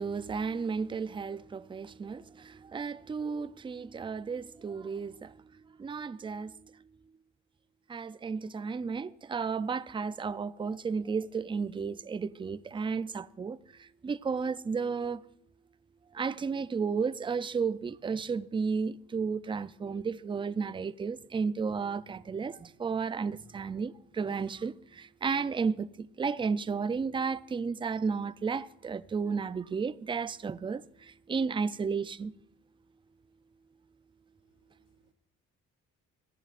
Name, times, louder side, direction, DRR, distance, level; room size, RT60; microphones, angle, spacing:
voice 1, 0.0-7.1 7.9-15.3 16.1-32.3, right 5 dB, 15° right, 0.4 m, -33 dB
voice 2, 34.4-35.1, left 5 dB, 85° left, 2.7 m, -75 dB
24.5 x 11.0 x 2.5 m
cardioid pair, 90°, 30 cm